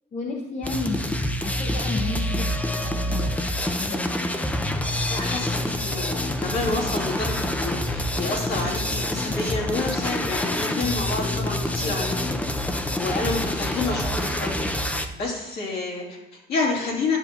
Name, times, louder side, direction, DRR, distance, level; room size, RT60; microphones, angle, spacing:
voice 1, 0.1-1.1 1.4-2.5 2.8-3.3 3.8-4.1, left 3 dB, 45° left, 0 dB, 1.0 m, -31 dB
sound 1, 0.6-15.1, left 1 dB, 10° left, 0.6 m, -27 dB
voice 2, 5.1-12.2 12.6-17.2, left 3 dB, 70° left, -4 dB, 2.7 m, -29 dB
11.5 x 6.8 x 2.9 m, 0.94 s
cardioid pair, 110°, 17 cm